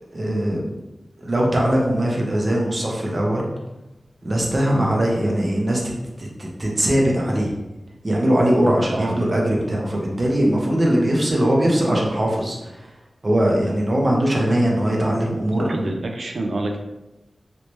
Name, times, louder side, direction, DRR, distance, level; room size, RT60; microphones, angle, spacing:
voice 1, 0.1-0.7 1.2-3.5 4.2-5.9 6.2-7.5 8.0-12.9 13.2-15.7, right 1 dB, 35° right, -2 dB, 0.8 m, -20 dB
voice 2, 15.7-16.8, right 2 dB, 70° right, 3 dB, 0.5 m, -27 dB
3.2 x 2.9 x 3.1 m, 0.97 s
wide cardioid pair, 90°, 0 cm